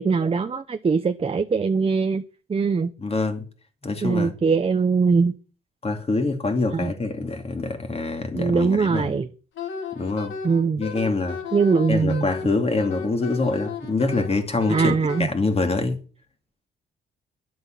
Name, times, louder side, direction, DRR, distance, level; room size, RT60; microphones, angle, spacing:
voice 1, 0.0-2.2 2.5-2.9 4.0-5.3 6.7-6.9 8.3-9.3 10.4-10.8 11.5-12.3 14.7-15.3, right 5 dB, 30° right, 0.9 m, -21 dB
voice 2, 3.0-3.4 3.8-4.3 5.8-9.2 9.9-10.3 10.8-11.4 11.9-16.0, left 3 dB, 30° left, 2.8 m, -25 dB
Wind instrument woodwind instrument, 9.5-15.2, left 6 dB, 75° left, 4.1 m, -34 dB
10.5 x 7.8 x 7.8 m
cardioid pair, 90°, 20 cm